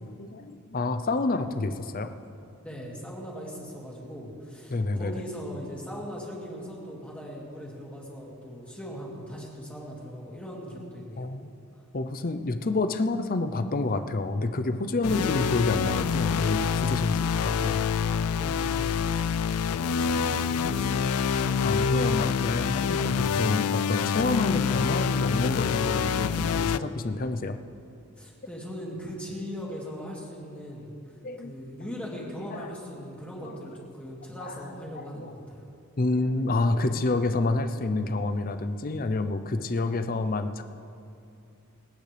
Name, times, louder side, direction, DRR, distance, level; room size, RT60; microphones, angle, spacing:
voice 1, 0.0-2.1 4.7-5.1 11.2-11.5 11.9-17.8 21.6-27.6 31.2-31.6 32.5-32.7 33.4-33.6 34.4-35.4 36.0-40.6, left 2 dB, 40° left, 10 dB, 0.6 m, -28 dB
voice 2, 2.6-11.3 18.3-19.3 19.7-21.2 28.2-30.9 31.4-35.6, equal, 5° left, -4 dB, 2.1 m, -39 dB
sound 1, 15.0-26.8, left 6 dB, 90° left, 0.4 m, -26 dB
27.5 x 9.2 x 3.4 m, 2.7 s
head